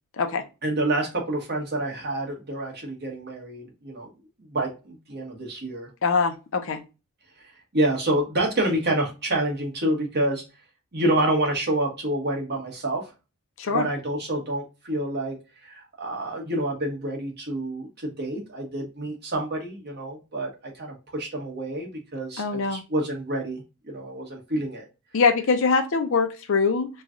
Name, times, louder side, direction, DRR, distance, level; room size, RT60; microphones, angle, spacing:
voice 1, 0.6-4.1 4.5-5.9 7.7-10.4 10.9-13.1 13.7-15.4 15.6-20.5 20.7-24.8, right 1 dB, 45° right, 0 dB, 1.2 m, -28 dB
voice 2, 6.0-6.8 13.6-13.9 22.4-22.8 25.1-26.9, left 4 dB, 60° left, 7 dB, 0.6 m, -23 dB
3.1 x 2.4 x 3.6 m, 0.29 s
head